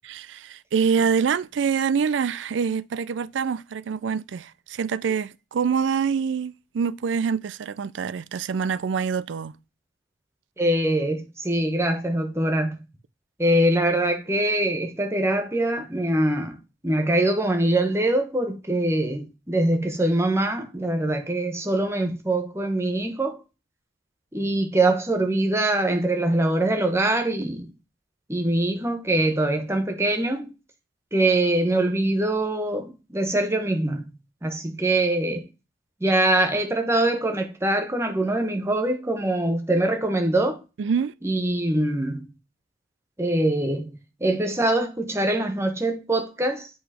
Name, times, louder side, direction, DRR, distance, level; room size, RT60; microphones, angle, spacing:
voice 1, 0.0-9.5 40.8-41.1, right 6 dB, 75° right, 0.4 m, -25 dB
voice 2, 10.6-12.8 13.4-16.6 16.8-23.4 24.3-27.7 28.3-30.5 31.1-35.4 36.0-40.6 41.2-42.3 43.2-46.7, right 1 dB, 15° right, 0.9 m, -23 dB
8.0 x 3.1 x 4.8 m
head